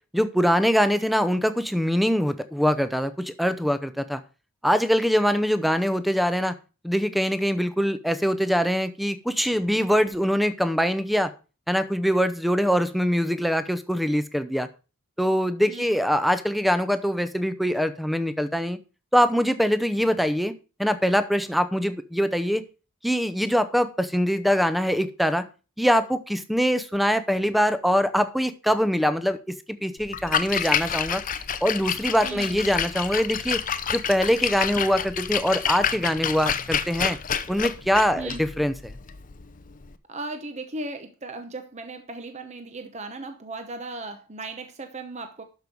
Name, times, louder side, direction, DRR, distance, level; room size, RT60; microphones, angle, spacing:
voice 1, 0.1-4.2 4.6-6.5 6.8-11.3 11.7-14.7 15.2-18.8 19.1-20.5 20.8-22.6 23.0-25.4 25.8-29.4 29.7-31.2 31.6-33.6 33.9-37.2 37.5-38.9, equal, ahead, 11 dB, 0.7 m, -23 dB
Splash splatter, 30.0-39.9, left 8 dB, 40° left, 0.6 m, -29 dB
voice 2, 32.2-32.6 38.2-38.4 40.1-45.4, right 2 dB, 30° right, 7 dB, 0.9 m, -36 dB
12.0 x 5.5 x 4.7 m, 0.33 s
head